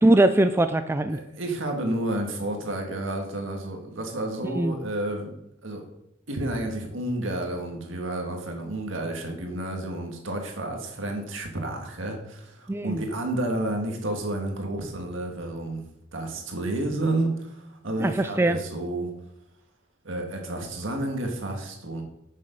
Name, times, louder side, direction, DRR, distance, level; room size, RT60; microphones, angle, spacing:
voice 1, 0.0-1.2 4.5-4.7 12.7-13.0 18.0-18.6, right 1 dB, 10° right, 9 dB, 0.3 m, -21 dB
voice 2, 1.1-5.3 5.6-5.8 6.3-15.8 16.1-19.1 20.0-22.0, right 1 dB, 70° right, 3 dB, 1.8 m, -30 dB
8.3 x 6.9 x 5.2 m, 0.81 s
head